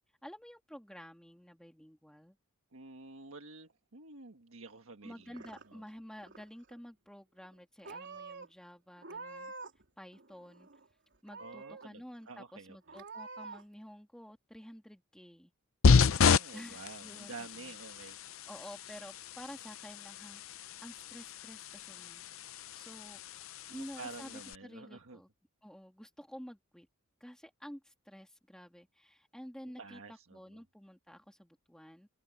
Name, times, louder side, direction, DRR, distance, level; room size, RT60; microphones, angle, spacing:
voice 1, 0.2-2.4 5.0-9.5 10.0-10.7 11.2-15.5 16.5-17.7 18.5-20.4 20.8-22.3 22.5-23.2 23.7-24.3 24.6-25.3 25.6-26.9 27.2-30.0 30.3-32.1, equal, 5° left, 1.7 m, -50 dB
voice 2, 2.7-5.8 11.4-13.0 16.0-18.5 23.7-25.2 29.6-30.6, right 3 dB, 75° right, 1.5 m, -50 dB
Purr / Meow, 5.1-5.9 6.2-6.8 7.4-7.6 7.8-8.5 9.0-9.8 10.1-10.9 11.3-11.9 12.3-12.4 12.9-13.6, right 3 dB, 60° right, 3.8 m, -47 dB
sound 1, 15.8-24.5, left 5 dB, 70° left, 0.6 m, -31 dB
open air
head